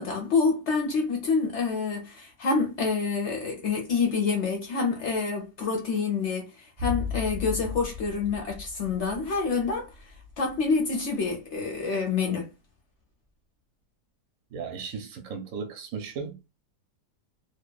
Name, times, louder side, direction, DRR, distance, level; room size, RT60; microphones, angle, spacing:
voice 1, 0.0-9.9 10.4-12.5, left 4 dB, 65° left, 0.7 m, -27 dB
sound 1, 6.8-11.0 11.3-11.4, left 6 dB, 45° right, 0.6 m, -36 dB
voice 2, 14.5-16.4, right 5 dB, 65° right, 0.9 m, -36 dB
2.8 x 2.1 x 2.2 m
omnidirectional pair, 1.8 m